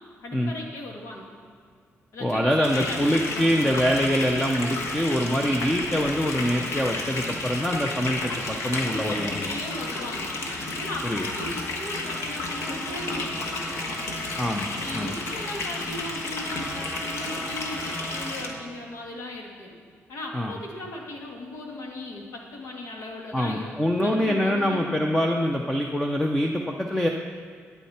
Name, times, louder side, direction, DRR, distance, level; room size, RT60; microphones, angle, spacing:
voice 1, 0.2-1.3 2.1-3.9 8.8-10.3 10.8-13.7 14.7-19.8 20.1-25.0, left 1 dB, 80° left, 0 dB, 1.9 m, -37 dB
voice 2, 2.2-9.5 11.0-11.3 14.4-14.7 14.9-15.1 20.3-20.5 23.3-27.1, equal, 10° left, 2 dB, 0.6 m, -24 dB
sound 1, 2.6-18.5, left 2 dB, 60° left, 1.3 m, -32 dB
Trumpet, 12.6-18.9, right 2 dB, 10° right, 1.5 m, -42 dB
12.5 x 9.3 x 4.3 m, 2.1 s
cardioid pair, 135°, 5 cm